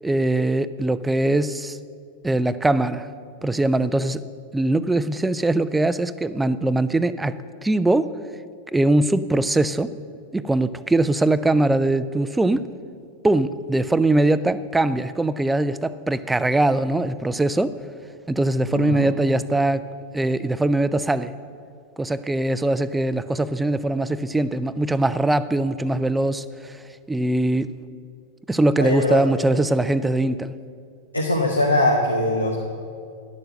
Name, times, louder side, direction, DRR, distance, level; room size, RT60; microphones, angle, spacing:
voice 1, 0.0-1.8 2.2-3.1 3.4-4.2 4.5-7.3 7.6-8.1 8.7-9.9 10.3-12.7 13.2-17.7 18.3-19.9 20.1-21.3 22.0-26.8 27.1-27.7 28.5-30.5, right 2 dB, 10° right, 15 dB, 0.4 m, -21 dB
voice 2, 18.5-19.0 28.8-29.2 31.1-32.6, left 1 dB, 85° left, 0 dB, 0.9 m, -22 dB
10.5 x 6.8 x 7.5 m, 2.3 s
figure-of-eight pair, 90°, 0 cm